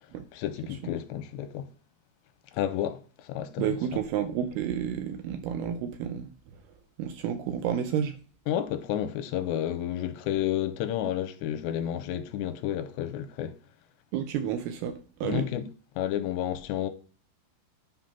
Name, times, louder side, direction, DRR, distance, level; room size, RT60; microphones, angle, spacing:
voice 1, 0.3-1.7 2.5-3.8 8.5-13.5 15.2-15.6 16.0-16.9, left 11 dB, 85° left, 2.8 m, -31 dB
voice 2, 3.6-6.3 7.0-8.2 14.1-15.5, right 9 dB, 80° right, 2.4 m, -30 dB
10.0 x 3.9 x 5.8 m
omnidirectional pair, 5.2 m